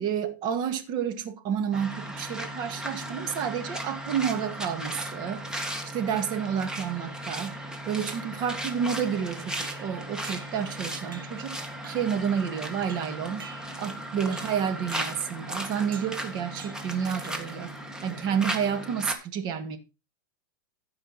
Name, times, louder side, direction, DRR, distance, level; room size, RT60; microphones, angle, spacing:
voice 1, 0.0-7.6 7.9-11.6 11.9-13.5 13.7-17.7 18.0-19.8, right 8 dB, 40° right, 2.0 m, -30 dB
sound 1, 1.7-19.1, right 1 dB, 5° right, 1.7 m, -36 dB
sound 2, 9.6-10.7 11.1-11.5 11.8-12.2 12.9-14.0 14.3-14.6 14.9-15.3 15.9-16.2 16.6-16.9 17.2-17.7, right 7 dB, 85° right, 1.7 m, -47 dB
14.5 x 5.4 x 4.2 m
hypercardioid pair, 125°, 11 cm